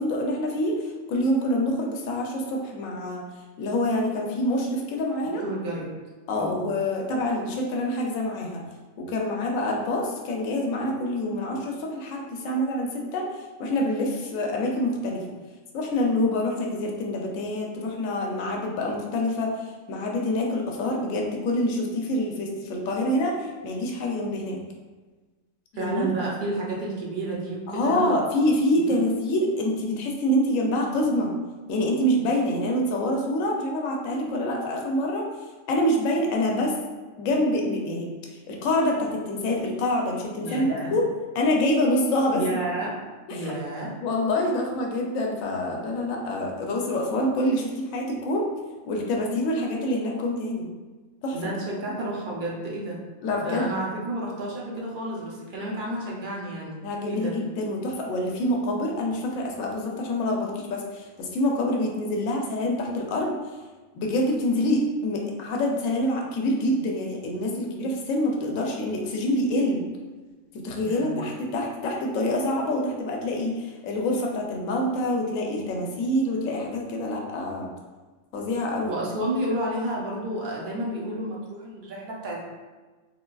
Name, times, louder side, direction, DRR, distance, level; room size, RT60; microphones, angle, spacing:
voice 1, 0.0-3.2 3.6-5.4 6.3-8.6 9.0-13.3 13.6-15.2 15.7-19.5 19.9-24.6 25.7-26.1 27.7-31.3 31.7-35.2 35.7-36.7 37.2-38.1 38.5-41.0 41.3-42.4 43.3-43.5 44.0-48.5 48.9-50.7 51.2-51.4 53.2-53.7 56.8-63.4 63.9-69.8 70.6-77.7 78.3-79.0, left 1 dB, 75° left, 0 dB, 1.0 m, -26 dB
voice 2, 5.4-5.9 6.4-6.7 25.8-28.3 28.7-28.9 40.4-41.0 42.3-43.0 43.3-43.9 51.3-53.0 53.3-57.4 70.8-71.2 78.9-82.4, right 1 dB, 50° right, -4 dB, 0.6 m, -31 dB
3.7 x 2.3 x 2.3 m, 1.3 s
omnidirectional pair, 1.4 m